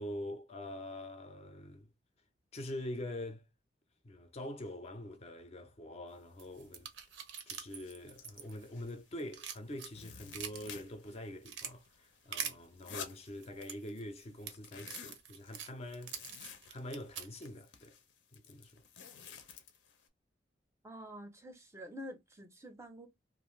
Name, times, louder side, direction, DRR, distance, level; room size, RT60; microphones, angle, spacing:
voice 1, 0.0-1.9 2.5-3.4 4.0-6.9 7.5-16.2 16.7-18.0 18.3-18.8, left 1 dB, 35° left, 0.5 m, -44 dB
sound 1, 6.4-6.5 6.9-7.2 7.6-9.1 9.4-11.2 11.5-13.9 14.2-20.1, left 6 dB, 80° left, 0.6 m, -52 dB
sound 2, 6.4-8.9 9.2-10.7 11.1-11.7 12.3-12.6 13.3-17.5, right 8 dB, 85° right, 0.6 m, -44 dB
voice 2, 20.8-23.1, equal, 15° right, 0.5 m, -48 dB
2.5 x 2.4 x 3.0 m
head